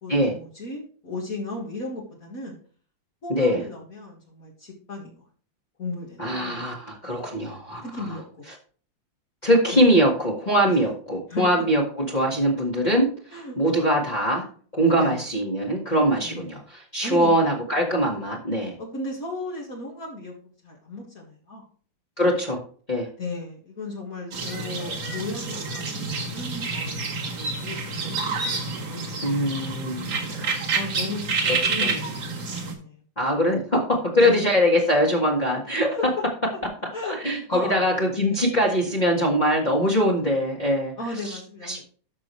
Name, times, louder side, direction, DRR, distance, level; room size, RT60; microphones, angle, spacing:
voice 1, 0.0-2.6 3.2-5.2 5.8-6.6 7.8-8.4 9.7-9.9 10.7-10.8 11.3-11.6 13.3-13.6 15.0-15.2 16.2-16.5 17.0-17.5 18.8-20.3 20.6-21.6 23.2-28.1 28.9-29.4 30.7-33.0 34.2-34.4 35.9-36.0 36.9-37.9 38.5-38.7 41.0-41.8, left 2 dB, 45° left, -2 dB, 2.3 m, -35 dB
voice 2, 3.3-3.6 6.2-7.9 9.4-13.1 13.6-14.4 14.7-18.8 22.2-22.6 22.9-23.1 29.2-30.5 31.8-31.9 33.2-35.9 37.0-40.9 41.2-41.4 41.7-41.8, equal, 25° left, -2 dB, 1.8 m, -22 dB
sound 1, 24.3-32.7, right 4 dB, 80° right, 2.7 m, -29 dB
12.5 x 6.1 x 3.2 m, 0.43 s
omnidirectional pair, 2.1 m